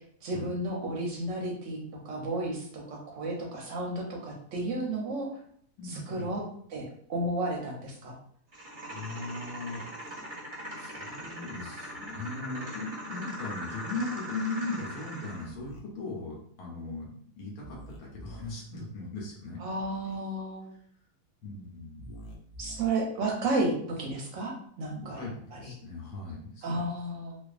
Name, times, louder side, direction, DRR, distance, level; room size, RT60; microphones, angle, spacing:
voice 1, 0.0-5.3 5.8-6.4 6.7-8.2 19.6-20.7 22.6-25.8 26.6-27.4, right 2 dB, 65° right, -1 dB, 0.8 m, -33 dB
voice 2, 5.8-6.3 8.9-10.1 10.7-19.6 21.4-22.1 24.9-26.8, left 2 dB, 85° left, -3 dB, 1.1 m, -38 dB
sound 1, 8.5-15.5, equal, 35° right, 0.7 m, -41 dB
sound 2, 15.4-15.8 17.6-18.5 19.8-20.2 21.9-22.9, equal, 65° left, 0.5 m, -46 dB
2.4 x 2.3 x 2.3 m, 0.63 s
omnidirectional pair, 1.6 m